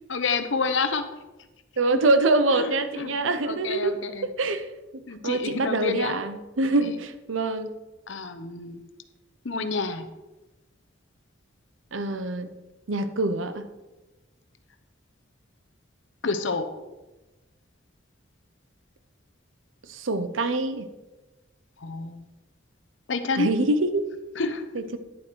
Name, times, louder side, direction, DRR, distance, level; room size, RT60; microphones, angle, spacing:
voice 1, 0.1-1.0 1.9-2.0 2.5-4.3 5.1-6.2 6.8-6.9 8.1-8.8 9.4-10.1 16.2-16.7 21.8-22.2 23.1-23.5 24.3-24.6, left 4 dB, 70° left, 9 dB, 0.9 m, -29 dB
voice 2, 1.8-4.0 4.2-4.6 4.9-7.7 11.9-12.5 12.9-13.6 19.9-20.9 23.4-24.0, right 2 dB, 85° right, 10 dB, 0.8 m, -25 dB
10.5 x 7.5 x 4.6 m, 1.1 s
head